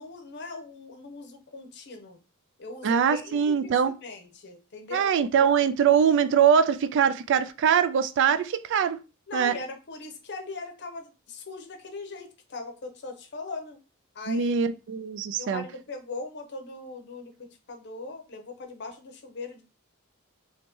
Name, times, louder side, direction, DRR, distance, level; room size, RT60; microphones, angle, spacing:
voice 1, 0.0-2.2 2.6-5.1 9.3-13.8 14.1-14.5 15.4-19.6, left 3 dB, 50° left, 0.7 m, -40 dB
voice 2, 2.8-3.9 4.9-9.0 9.3-9.6 14.3-15.6, right 7 dB, 55° right, 0.3 m, -22 dB
3.0 x 2.8 x 3.4 m
head